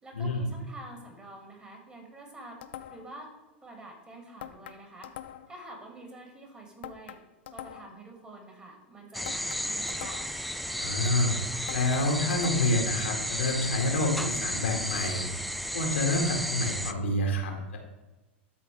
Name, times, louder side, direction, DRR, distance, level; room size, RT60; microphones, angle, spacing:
voice 1, 0.0-2.6 2.9-3.3 3.6-5.1 5.5-7.2 7.5-10.2, right 2 dB, 15° right, 1 dB, 2.4 m, -47 dB
sound 1, 2.6-3.2 4.4-5.6 6.8-8.0 9.2-10.5 11.7-12.9, left 12 dB, 70° left, 0.6 m, -44 dB
sound 2, 9.1-16.9, equal, ahead, 0.4 m, -33 dB
voice 2, 10.8-11.3 11.7-15.2 15.7-17.8, left 1 dB, 85° left, 1 dB, 2.0 m, -28 dB
12.5 x 4.2 x 3.4 m, 1.1 s
hypercardioid pair, 105°, 6 cm